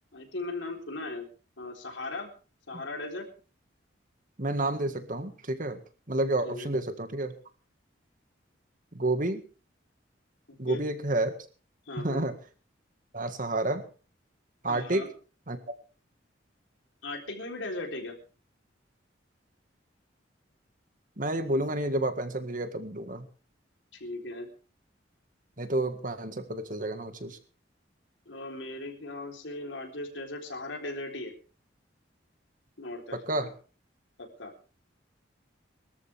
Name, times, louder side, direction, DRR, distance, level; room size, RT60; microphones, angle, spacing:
voice 1, 0.1-1.3 1.6-2.3 2.7-3.3 6.4-6.7 10.5-10.8 11.9-12.2 14.7-15.1 17.0-18.2 23.9-24.5 28.3-31.3 32.8-33.5 34.2-34.5, left 2 dB, 85° left, 2 dB, 3.9 m, -38 dB
voice 2, 4.4-5.8 6.1-7.3 8.9-9.4 10.6-11.3 12.0-12.4 13.1-13.9 14.6-15.1 15.5-15.6 21.2-23.3 25.6-27.4 33.1-33.5, right 2 dB, 45° right, 9 dB, 1.8 m, -30 dB
22.5 x 13.5 x 3.5 m, 0.37 s
head